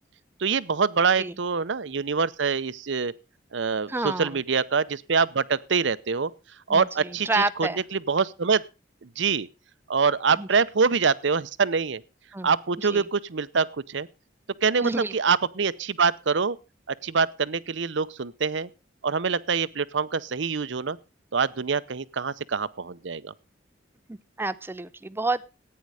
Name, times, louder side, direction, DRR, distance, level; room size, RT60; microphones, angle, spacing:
voice 1, 0.4-3.1 3.5-6.3 6.7-8.6 9.0-9.5 9.9-12.0 12.4-14.1 14.6-16.6 17.0-18.7 19.0-21.0 21.3-23.3, right 5 dB, 70° right, 0.7 m, -25 dB
voice 2, 3.9-4.4 6.7-7.8 10.3-10.5 12.3-12.5 12.9-13.1 14.8-15.1 24.1-25.4, right 2 dB, 10° right, 0.5 m, -29 dB
14.5 x 9.6 x 4.8 m
head